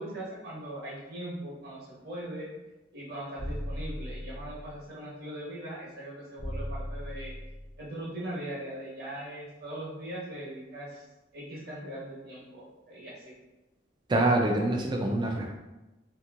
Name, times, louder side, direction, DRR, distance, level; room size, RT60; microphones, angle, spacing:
voice 1, 0.0-2.5 2.9-7.3 7.8-11.0 11.3-13.3, right 1 dB, 55° right, -6 dB, 1.0 m, -40 dB
sound 1, 3.4-4.8 6.4-7.8, equal, 30° left, 0.6 m, -37 dB
voice 2, 14.1-15.6, right 1 dB, 25° right, 1 dB, 0.3 m, -25 dB
2.9 x 2.5 x 2.4 m, 1.0 s
head